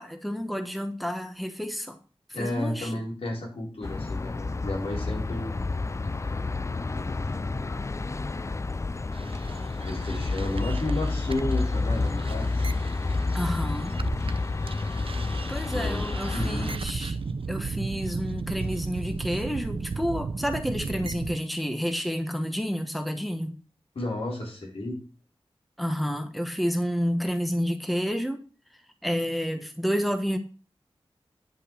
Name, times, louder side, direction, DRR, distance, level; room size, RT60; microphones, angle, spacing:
voice 1, 0.0-2.0 2.4-2.9 13.3-14.0 15.5-17.2 17.5-23.5 25.8-28.4 29.0-30.4, equal, ahead, 1.1 m, -30 dB
voice 2, 2.3-5.7 6.0-7.7 9.0-9.4 9.8-12.7 15.7-16.0 16.3-16.7 23.9-25.0, left 1 dB, 80° left, 4.8 m, -33 dB
sound 1, 3.8-16.8, left 3 dB, 30° left, 0.4 m, -29 dB
sound 2, 9.1-14.4 14.7-21.4, right 4 dB, 70° right, 0.7 m, -35 dB
10.5 x 5.6 x 6.3 m
wide cardioid pair, 90°, 10 cm